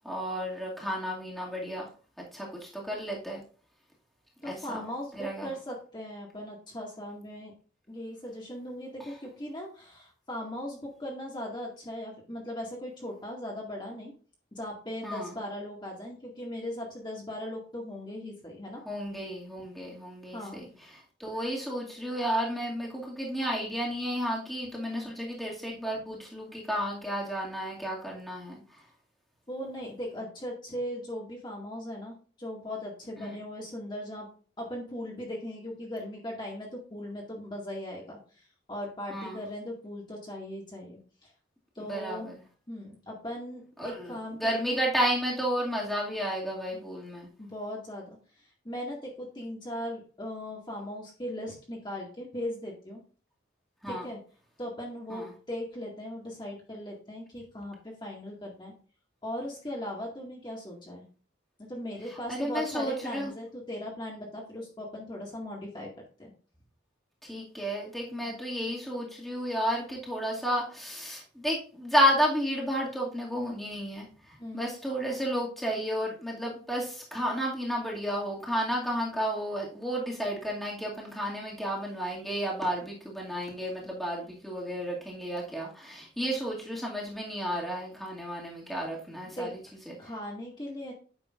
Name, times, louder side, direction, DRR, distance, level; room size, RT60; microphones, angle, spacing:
voice 1, 0.0-1.9 2.2-3.4 4.4-4.9 5.1-5.5 15.0-15.3 18.9-28.6 33.2-33.4 39.1-39.4 41.8-42.3 43.8-47.3 53.8-54.0 55.1-55.3 62.1-63.3 67.2-74.1 74.5-89.6 89.9-90.0, equal, ahead, -4 dB, 2.2 m, -32 dB
voice 2, 4.4-7.5 7.9-14.1 14.5-18.8 20.3-20.6 24.9-25.3 29.5-34.3 34.6-38.2 38.7-41.3 41.8-42.3 42.7-44.8 46.7-46.8 47.4-48.2 48.6-53.0 53.9-54.2 54.6-58.7 59.2-61.0 61.6-65.9 66.2-66.3 68.2-68.4 74.4-74.7 89.3-89.5 90.0-90.9, left 1 dB, 25° left, -2 dB, 2.0 m, -38 dB
9.3 x 6.6 x 2.5 m, 0.40 s
head